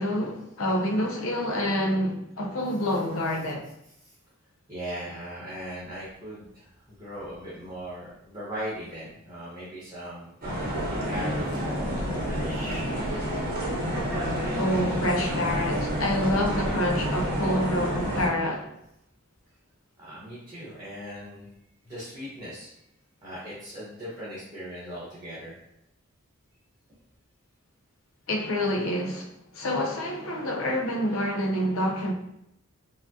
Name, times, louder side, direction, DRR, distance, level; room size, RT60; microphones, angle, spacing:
voice 1, 0.0-3.6 14.6-18.7 28.3-29.3 29.5-32.1, left 1 dB, 80° left, 0.7 m, -27 dB
voice 2, 4.7-10.3 11.0-13.0 20.0-21.5 21.8-22.7 23.2-25.5, equal, 15° right, 0.9 m, -39 dB
sound 1, 10.4-18.3, equal, 45° right, 0.8 m, -29 dB
4.8 x 2.1 x 2.6 m
head